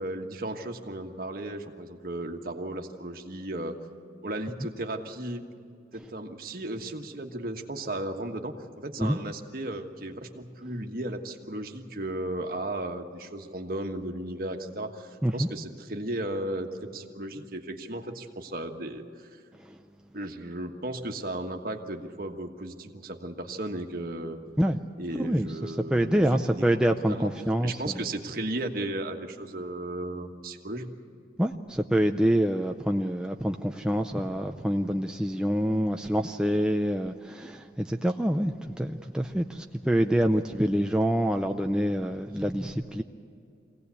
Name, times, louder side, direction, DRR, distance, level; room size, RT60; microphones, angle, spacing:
voice 1, 0.0-3.7 4.2-5.4 5.9-19.3 20.1-24.4 25.0-26.7 27.1-27.3 27.6-30.9, right 1 dB, 50° right, 4 dB, 1.4 m, -35 dB
voice 2, 25.2-27.9 31.4-43.0, equal, 5° right, 3 dB, 0.5 m, -26 dB
23.5 x 17.0 x 8.3 m, 2.4 s
head